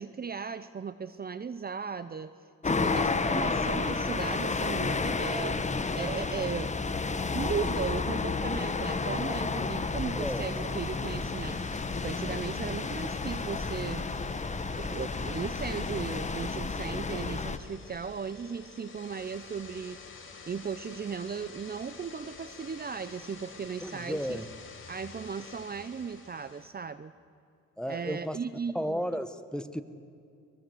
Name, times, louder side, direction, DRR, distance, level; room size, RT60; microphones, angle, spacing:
voice 1, 0.0-2.3 2.6-6.8 7.1-11.6 12.0-14.1 14.8-20.0 20.5-24.4 24.9-27.1 27.9-29.0, right 6 dB, 30° right, 14 dB, 0.8 m, -37 dB
sound 1, 2.6-17.6, left 4 dB, 25° left, 1.4 m, -31 dB
voice 2, 10.1-10.5 23.8-24.5 27.8-28.4 28.7-29.8, equal, 5° left, 10 dB, 1.5 m, -33 dB
sound 2, 10.2-26.7, left 4 dB, 40° left, 4.2 m, -50 dB
24.0 x 22.0 x 8.0 m, 2.4 s
cardioid pair, 90°, 30 cm